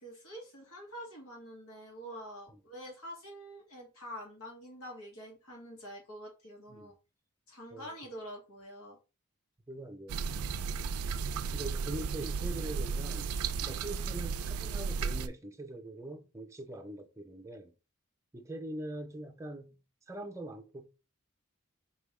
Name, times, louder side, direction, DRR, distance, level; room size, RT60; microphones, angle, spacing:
voice 1, 0.0-6.9 7.5-9.0 13.6-13.8, equal, 85° left, 1.9 m, -46 dB
voice 2, 9.7-10.4 11.5-13.3 13.7-17.7 18.3-19.8 20.1-20.9, right 1 dB, 15° right, 0.5 m, -43 dB
sound 1, 10.1-15.3, right 5 dB, 85° right, 0.4 m, -34 dB
4.3 x 3.4 x 3.0 m
head